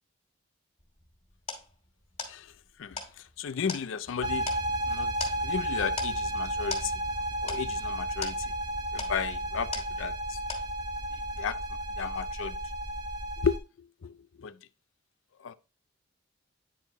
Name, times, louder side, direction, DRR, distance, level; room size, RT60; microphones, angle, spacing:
sound 1, 0.8-10.2 10.5-11.1, left 4 dB, 30° left, 2.4 m, -41 dB
voice 1, 3.4-4.5 4.9-5.1 5.4-6.9 7.4-8.3 8.9-9.7 10.0-10.4 11.4-11.6 12.0-12.5 13.4-13.6 14.0-14.1 14.4-14.5 15.4-15.5, left 6 dB, 80° left, 0.4 m, -33 dB
sound 2, 4.2-13.6, right 1 dB, 25° right, 1.6 m, -32 dB
9.9 x 4.6 x 2.9 m
head